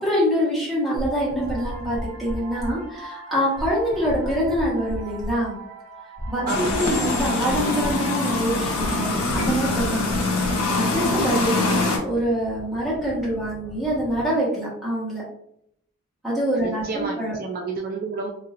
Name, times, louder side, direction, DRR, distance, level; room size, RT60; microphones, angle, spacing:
voice 1, 0.0-5.6 6.3-10.1 10.5-15.2 16.2-17.4, equal, ahead, -8 dB, 1.2 m, -25 dB
sound 1, 1.0-11.4, right 1 dB, 85° right, 0.8 m, -34 dB
sound 2, 6.5-12.0, left 3 dB, 80° left, 0.7 m, -24 dB
voice 2, 6.5-6.9 16.6-18.3, right 3 dB, 40° right, 1 dB, 0.3 m, -30 dB
sound 3, 8.3-14.2, left 1 dB, 30° left, 0.8 m, -41 dB
3.0 x 2.7 x 2.4 m, 0.71 s
head